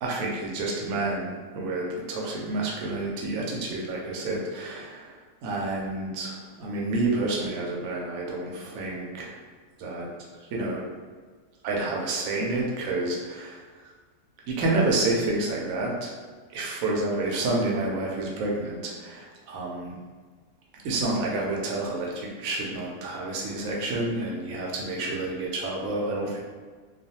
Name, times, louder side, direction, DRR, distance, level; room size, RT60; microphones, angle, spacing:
voice 1, 0.0-5.1 5.4-9.4 9.8-10.1 10.5-10.8 11.6-13.6 14.5-16.1 16.5-19.9 20.8-26.4, right 2 dB, 75° right, -2 dB, 1.0 m, -29 dB
2.4 x 2.3 x 2.7 m, 1.5 s
omnidirectional pair, 1.5 m